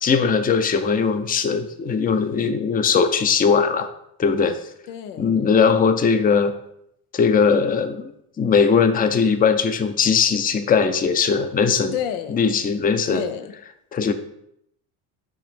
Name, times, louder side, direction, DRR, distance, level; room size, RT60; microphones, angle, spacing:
voice 1, 0.0-3.9 4.2-4.6 5.2-6.5 7.1-8.1 8.4-11.9 12.3-13.2 13.9-14.1, left 6 dB, 20° left, 9 dB, 0.5 m, -19 dB
voice 2, 4.9-5.3 11.9-12.6 13.1-13.5, left 9 dB, 90° left, 9 dB, 0.8 m, -30 dB
4.8 x 4.8 x 4.5 m, 0.77 s
supercardioid pair, 95°, 44 cm